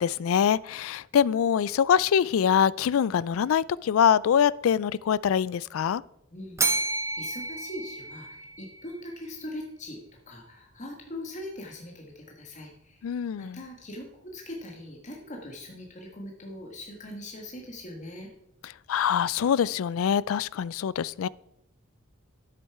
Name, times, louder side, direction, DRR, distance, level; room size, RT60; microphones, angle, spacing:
voice 1, 0.0-6.0 13.0-13.6 18.9-21.3, left 8 dB, 75° left, 0.3 m, -24 dB
voice 2, 6.3-10.0 10.3-13.1 13.4-18.3, left 1 dB, 35° left, 1.5 m, -41 dB
Bell, 6.6-8.8, right 2 dB, 15° right, 0.9 m, -30 dB
10.0 x 8.4 x 4.7 m
head